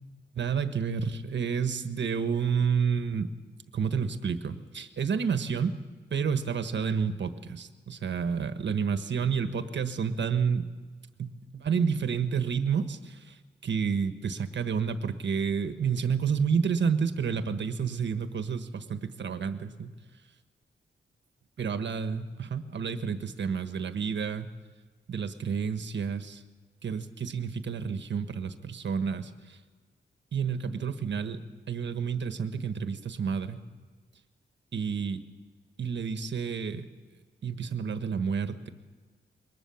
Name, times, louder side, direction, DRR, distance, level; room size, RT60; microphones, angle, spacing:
voice 1, 0.3-3.3 3.7-5.8 6.1-10.7 11.2-13.4 13.6-19.9 21.6-24.5 25.1-26.4 26.8-29.6 30.3-31.4 31.7-33.6 34.7-35.2 35.8-36.9 37.4-38.7, right 6 dB, 65° right, 9 dB, 1.4 m, -30 dB
22.0 x 19.5 x 7.2 m, 1.5 s
wide cardioid pair, 95°, 20 cm